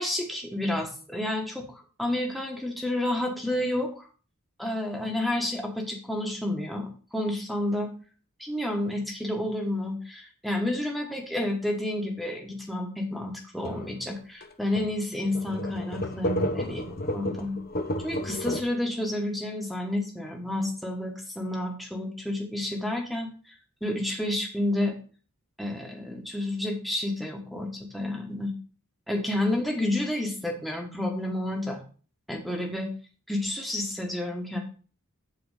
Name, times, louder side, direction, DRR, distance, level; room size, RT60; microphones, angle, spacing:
voice 1, 0.0-4.1 4.6-7.9 8.4-17.6 18.0-23.3 23.8-24.9 25.6-28.5 29.1-31.8 32.3-32.9 33.3-34.6, left 1 dB, ahead, 1 dB, 1.3 m, -30 dB
sound 1, 13.6-13.9 14.4-14.5 14.8-14.9 15.2-18.6, left 1 dB, 40° left, 0.8 m, -31 dB
7.6 x 4.3 x 6.5 m, 0.39 s
head